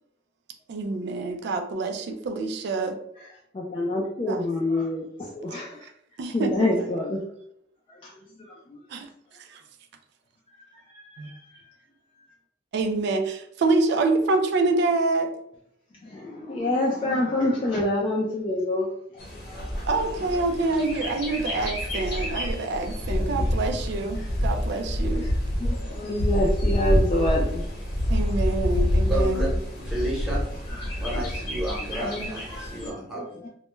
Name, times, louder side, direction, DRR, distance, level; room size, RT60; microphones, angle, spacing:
voice 1, 0.7-3.0 4.3-4.4 5.8-5.9 6.2-6.8 8.9-9.1 9.5-9.6 11.2-11.3 12.7-15.3 19.9-25.3 28.1-29.5, right 3 dB, 60° right, 5 dB, 0.3 m, -26 dB
voice 2, 3.5-5.9 6.3-7.2 8.0-8.8 10.9-11.5 12.2-12.3 16.0-18.9 19.5-19.7 23.1-23.5 24.2-24.3 25.2-25.3 25.6-27.6 30.7-31.0 31.9-33.5, left 1 dB, 25° left, -4 dB, 0.3 m, -28 dB
Bird, 19.2-32.9, equal, 55° left, 0.7 m, -27 dB
voice 3, 29.0-29.5 29.7-30.4 31.0-33.4, right 1 dB, ahead, -6 dB, 0.8 m, -32 dB
2.2 x 2.1 x 3.0 m, 0.73 s
head